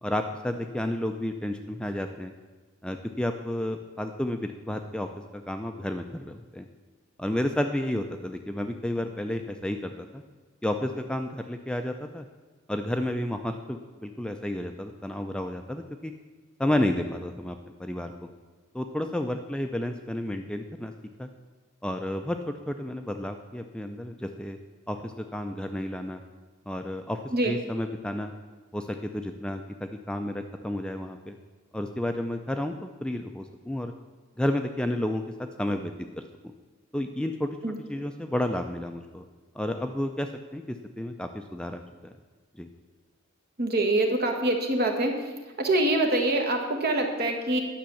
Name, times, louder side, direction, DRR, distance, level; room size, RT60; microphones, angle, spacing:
voice 1, 0.0-2.3 2.8-6.7 7.2-10.2 10.6-12.3 12.7-16.1 16.6-18.1 18.7-20.9 21.2-21.3 21.8-24.6 24.9-26.2 26.7-28.3 28.7-31.3 31.7-33.9 34.4-35.9 36.9-37.6 37.9-39.3 39.5-42.1 42.5-42.7, left 1 dB, 5° left, 5 dB, 0.4 m, -31 dB
voice 2, 43.6-45.2 45.6-47.6, right 1 dB, 50° right, 3 dB, 1.4 m, -25 dB
10.5 x 6.2 x 6.9 m, 1.3 s
head